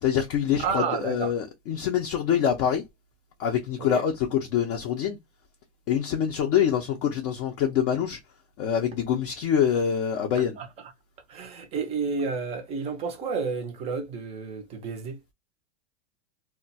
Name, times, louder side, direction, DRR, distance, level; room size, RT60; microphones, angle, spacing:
voice 1, 0.0-2.8 3.4-5.2 5.9-8.2 8.6-10.6, left 8 dB, 35° left, 0.5 m, -25 dB
voice 2, 0.6-1.3 3.8-4.0 10.6-10.7 11.3-15.2, right 5 dB, 20° right, 0.5 m, -31 dB
2.2 x 2.1 x 3.8 m
supercardioid pair, 150°, 35 cm